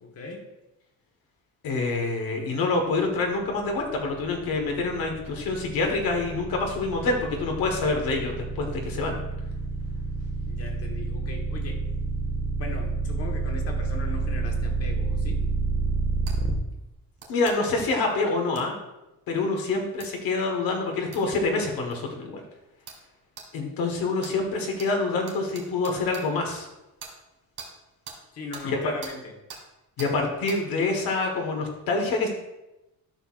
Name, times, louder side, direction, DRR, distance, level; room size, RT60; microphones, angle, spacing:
voice 1, 0.0-0.5 10.5-11.8 12.4-15.4 28.3-29.3, left 3 dB, 45° left, 2 dB, 1.3 m, -39 dB
voice 2, 1.6-9.2 17.3-18.8 19.3-22.4 23.5-26.7 28.6-28.9 30.0-32.3, left 3 dB, 80° left, 2 dB, 1.5 m, -26 dB
sound 1, 3.3-16.5, right 3 dB, 30° right, 1.0 m, -29 dB
sound 2, 16.3-16.4 17.2-17.6 18.5-18.7 20.0-20.1 21.1-21.2 21.9-22.0 22.9-23.0 23.4-23.5 24.2-24.3 24.8-24.9 25.3-26.2 27.0-27.1 27.6-27.7 28.0-28.2 28.5-28.7 29.0-29.1 29.5-29.6 30.0-30.1 30.5-30.6, right 5 dB, 45° right, 2.1 m, -42 dB
12.5 x 6.3 x 2.5 m, 0.96 s
cardioid pair, 180°, 35 cm